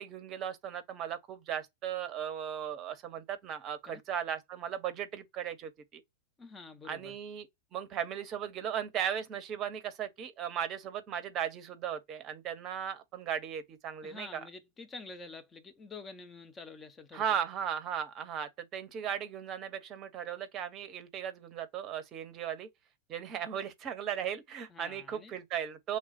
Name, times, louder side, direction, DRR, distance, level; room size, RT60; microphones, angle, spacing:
voice 1, 0.0-6.0 6.9-7.5 7.7-14.4 17.1-22.7 23.1-26.0, right 8 dB, 35° right, 0.7 m, -37 dB
voice 2, 6.4-7.2 14.0-17.2 24.7-25.3, left 3 dB, 20° left, 0.7 m, -48 dB
3.3 x 2.3 x 4.0 m
figure-of-eight pair, 90°, 0 cm